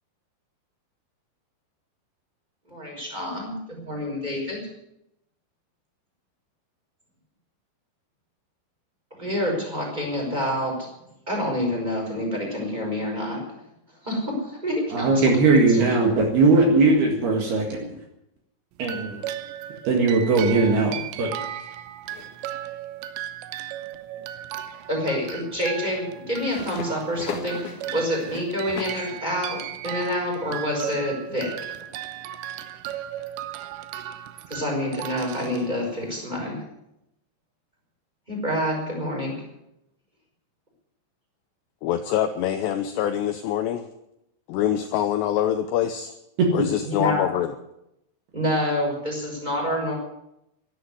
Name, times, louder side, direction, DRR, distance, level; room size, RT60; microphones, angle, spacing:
voice 1, 2.7-4.6 9.2-10.9 11.3-13.4 14.0-15.1 15.7-15.9 24.9-31.7 34.5-36.6 38.3-39.5 46.8-47.2 48.3-49.9, left 1 dB, 10° right, -1 dB, 5.4 m, -27 dB
voice 2, 14.9-18.0 18.8-19.2 19.8-21.3 46.4-46.7, right 3 dB, 60° right, 2 dB, 3.4 m, -19 dB
sound 1, 18.8-36.2, right 12 dB, 80° right, 2.7 m, -36 dB
sound 2, 22.1-22.5 26.2-29.1, left 6 dB, 60° left, 2.1 m, -37 dB
voice 3, 41.8-43.9 44.5-46.1 46.5-47.5, left 10 dB, 85° left, 8 dB, 2.4 m, -25 dB
12.5 x 11.5 x 9.5 m, 0.83 s
omnidirectional pair, 5.9 m